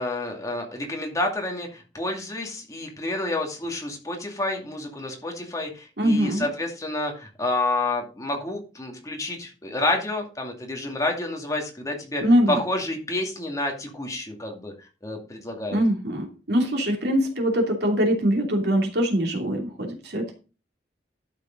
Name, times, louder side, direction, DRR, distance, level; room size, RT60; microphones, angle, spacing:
voice 1, 0.0-12.2 12.5-14.7 15.0-15.8, left 2 dB, 20° left, 2 dB, 2.4 m, -29 dB
voice 2, 6.0-6.5 12.2-12.6 15.7-20.3, equal, 65° right, 2 dB, 2.9 m, -23 dB
12.0 x 6.7 x 3.9 m, 0.32 s
head